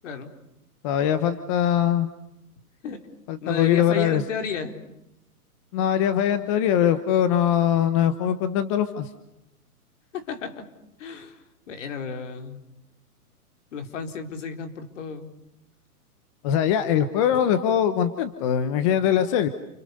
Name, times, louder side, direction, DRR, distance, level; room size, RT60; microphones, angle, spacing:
voice 1, 0.8-2.1 3.3-4.2 5.7-9.1 16.4-19.5, left 9 dB, 20° left, 11 dB, 1.0 m, -22 dB
voice 2, 3.4-4.8 10.1-10.7 11.0-11.4 11.7-12.6 13.7-15.3, left 5 dB, 50° left, 7 dB, 4.2 m, -33 dB
29.5 x 27.5 x 6.8 m, 0.87 s
hypercardioid pair, 165°, 46 cm